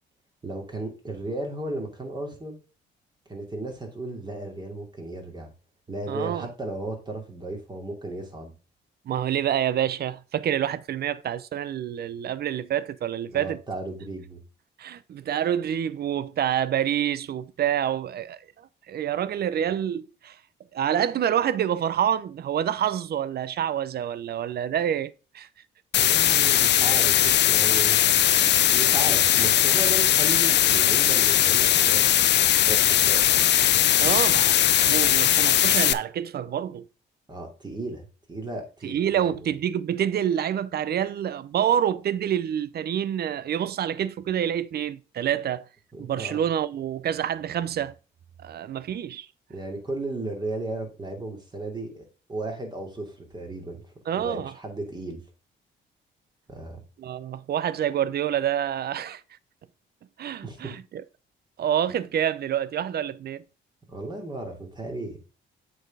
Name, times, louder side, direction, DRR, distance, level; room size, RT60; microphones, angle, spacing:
voice 1, 0.4-2.6 3.3-5.5 5.9-8.5 13.3-14.4 26.0-28.4 28.7-32.1 32.6-33.2 37.3-39.5 45.9-46.4 49.5-53.8 54.1-55.2 56.5-56.8 60.4-60.7 63.9-65.2, right 2 dB, 20° right, 2.6 m, -35 dB
voice 2, 6.1-6.5 9.1-13.6 14.8-18.4 18.9-20.4 20.7-25.5 34.0-34.6 34.8-36.8 38.8-45.6 46.0-47.9 48.4-49.3 54.1-54.5 57.0-59.2 60.2-61.0 61.6-63.4, right 10 dB, 55° right, 0.5 m, -27 dB
sound 1, 25.9-35.9, left 12 dB, 60° left, 0.5 m, -19 dB
7.8 x 4.1 x 4.8 m
cardioid pair, 90°, 20 cm